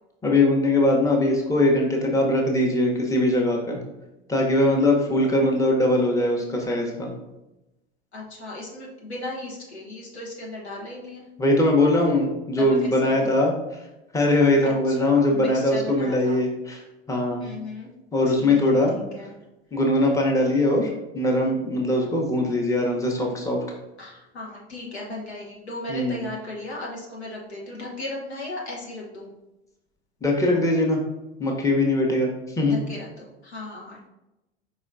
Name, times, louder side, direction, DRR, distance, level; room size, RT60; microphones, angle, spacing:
voice 1, 0.2-3.8 4.3-7.1 11.4-13.5 14.1-16.8 17.1-17.5 18.1-18.9 19.7-23.6 25.9-26.2 30.2-31.0 31.4-32.3 32.6-32.8, left 1 dB, 10° left, -1 dB, 0.9 m, -21 dB
voice 2, 8.1-11.3 12.5-13.3 14.6-16.4 17.4-17.9 18.3-19.3 24.0-29.3 32.6-34.1, left 2 dB, 85° left, -3 dB, 1.2 m, -36 dB
4.8 x 4.1 x 2.5 m, 0.97 s
figure-of-eight pair, 80°, 32 cm